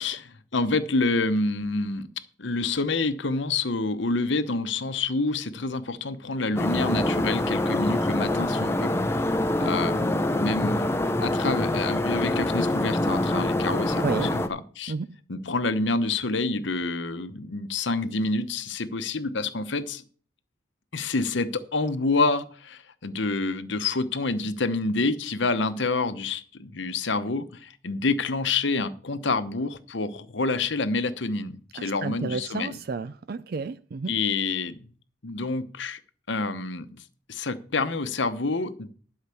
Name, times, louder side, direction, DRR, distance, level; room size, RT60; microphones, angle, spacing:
voice 1, 0.0-2.1 2.4-8.9 9.6-10.9 11.2-14.9 15.3-20.0 20.9-32.8 34.1-34.9 35.2-36.0 36.3-37.0 37.3-38.9, left 3 dB, 70° left, 0.9 m, -28 dB
sound 1, 6.6-14.5, left 1 dB, 15° left, 0.7 m, -25 dB
voice 2, 14.0-14.4 14.9-15.1 31.8-34.1, right 4 dB, 50° right, 0.4 m, -31 dB
11.5 x 5.6 x 6.9 m
head